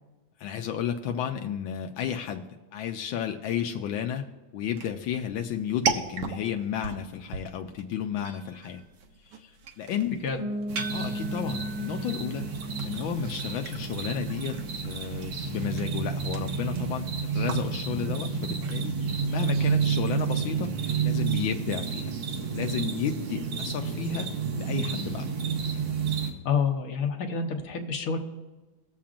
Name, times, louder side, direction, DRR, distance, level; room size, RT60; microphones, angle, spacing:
voice 1, 0.4-2.4 2.7-4.3 4.5-8.8 9.2-10.2 10.9-12.5 12.8-14.6 14.8-22.1 22.5-24.3 24.6-25.3, left 8 dB, 80° left, 4 dB, 1.4 m, -32 dB
sound 1, 4.7-19.8, right 6 dB, 65° right, 1.3 m, -39 dB
Bass guitar, 10.4-14.1, equal, 30° left, 1.1 m, -37 dB
sound 2, 10.7-26.3, right 6 dB, 85° right, 1.9 m, -30 dB
voice 2, 26.4-28.2, left 6 dB, 55° left, 3 dB, 1.3 m, -28 dB
20.0 x 7.1 x 2.5 m, 1.2 s
omnidirectional pair, 2.2 m